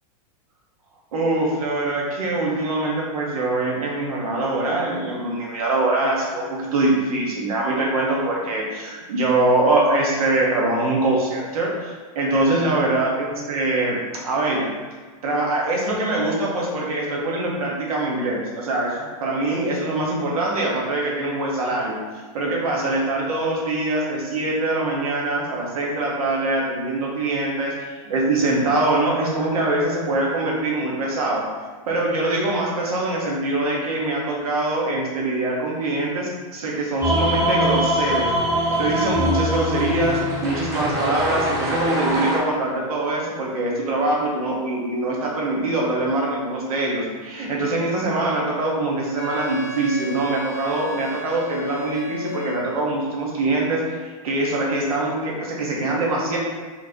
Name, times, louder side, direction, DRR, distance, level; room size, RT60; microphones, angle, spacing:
voice 1, 1.1-14.7 15.2-31.5 31.9-56.4, right 2 dB, 85° right, -3 dB, 1.5 m, -23 dB
sound 1, 37.0-42.4, equal, 15° right, 1.1 m, -23 dB
Wind instrument woodwind instrument, 49.2-52.9, left 3 dB, 45° left, 0.7 m, -34 dB
4.6 x 3.9 x 2.9 m, 1.4 s
supercardioid pair, 140°, 18 cm